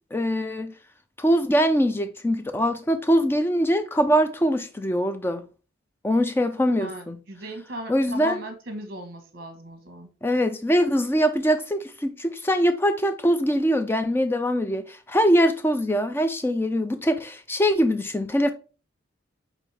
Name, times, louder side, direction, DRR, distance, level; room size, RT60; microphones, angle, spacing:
voice 1, 0.1-0.7 1.2-5.4 6.0-7.2 7.9-8.4 10.2-18.5, equal, 10° left, 0.3 m, -23 dB
voice 2, 6.8-10.1, right 1 dB, 50° right, 1.1 m, -37 dB
6.0 x 2.6 x 3.2 m
head